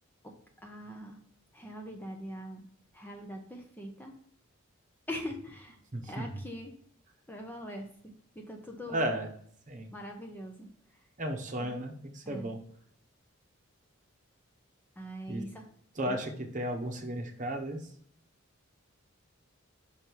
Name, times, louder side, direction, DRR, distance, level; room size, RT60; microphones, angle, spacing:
voice 1, 0.2-1.2 1.5-2.7 2.9-4.2 5.1-5.8 6.0-6.8 7.3-9.2 9.9-11.1 11.6-11.7 12.2-12.5 15.0-15.7 16.1-16.2, equal, 10° left, 2 dB, 0.7 m, -43 dB
voice 2, 5.9-6.3 8.9-9.3 9.7-9.9 11.2-12.6 15.3-15.4 16.0-17.9, right 1 dB, 35° right, 3 dB, 1.0 m, -34 dB
5.7 x 5.2 x 4.6 m, 0.63 s
head